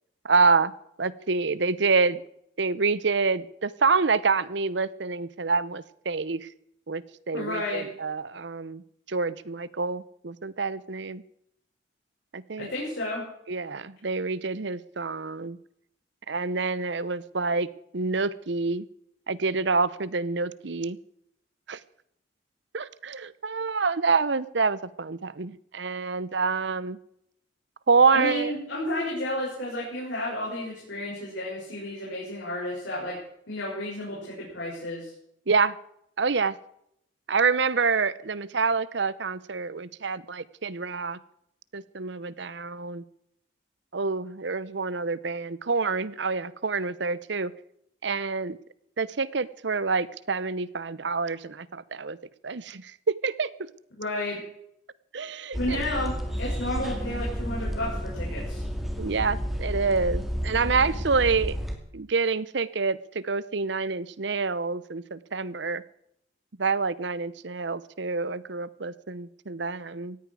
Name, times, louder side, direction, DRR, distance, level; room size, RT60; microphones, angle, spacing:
voice 1, 0.2-0.7 1.0-2.2 2.6-6.5 6.9-8.8 9.1-11.2 12.3-12.7 13.5-15.6 16.3-17.7 17.9-18.9 19.3-21.0 21.7-21.8 22.7-27.0 27.9-28.7 35.5-35.8 36.2-36.6 37.3-41.2 41.7-43.0 43.9-47.5 48.0-48.6 49.0-52.2 52.4-53.7 55.1-55.9 59.0-61.6 61.9-65.8 66.6-70.2, right 4 dB, 65° right, 18 dB, 0.8 m, -27 dB
voice 2, 7.3-7.9 12.6-13.2 28.1-33.2 33.5-35.1 54.0-54.4 55.6-58.6, left 1 dB, 70° left, -5 dB, 6.8 m, -32 dB
sound 1, 55.5-61.8, equal, ahead, 2.3 m, -31 dB
18.5 x 14.5 x 4.8 m, 0.76 s
head